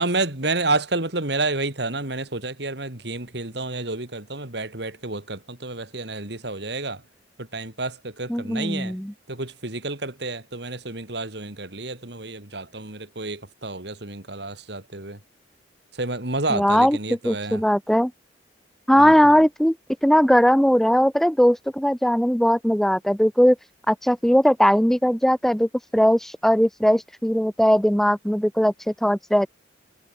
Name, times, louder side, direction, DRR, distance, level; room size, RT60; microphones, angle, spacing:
voice 1, 0.0-7.0 7.4-9.0 9.3-15.2 15.9-17.6 19.0-19.3, right 3 dB, 60° right, 2.9 m, -29 dB
voice 2, 8.3-9.1 16.5-17.0 17.2-18.1 18.9-19.8 20.0-23.6 23.9-29.5, equal, ahead, 0.5 m, -19 dB
head